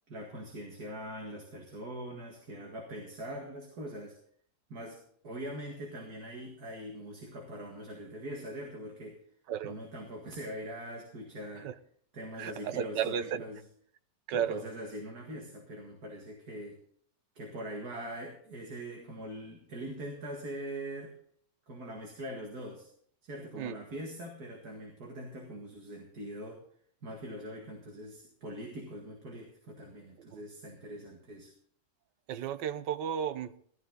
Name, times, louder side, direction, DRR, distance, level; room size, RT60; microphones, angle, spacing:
voice 1, 0.1-4.2 4.7-9.2 9.6-11.7 12.1-13.7 14.3-16.8 17.4-21.1 21.7-22.9 23.2-26.6 27.0-31.5, right 1 dB, 60° right, 2.4 m, -42 dB
voice 2, 12.4-13.4 14.3-14.6 23.6-23.8 30.3-30.4 32.3-33.5, right 8 dB, 85° right, 1.4 m, -33 dB
15.0 x 13.5 x 3.9 m
omnidirectional pair, 1.9 m